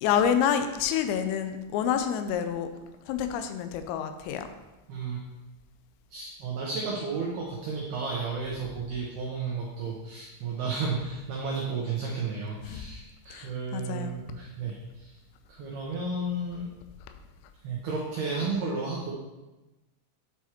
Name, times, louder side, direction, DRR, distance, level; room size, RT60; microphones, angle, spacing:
voice 1, 0.0-2.7 3.1-4.5 12.7-12.9 13.3-14.2, left 8 dB, 85° left, 8 dB, 3.2 m, -28 dB
voice 2, 4.9-5.2 6.1-15.1 15.5-16.7 17.6-19.1, right 4 dB, 90° right, -3 dB, 2.2 m, -33 dB
10.0 x 4.7 x 3.0 m, 1.1 s
omnidirectional pair, 5.9 m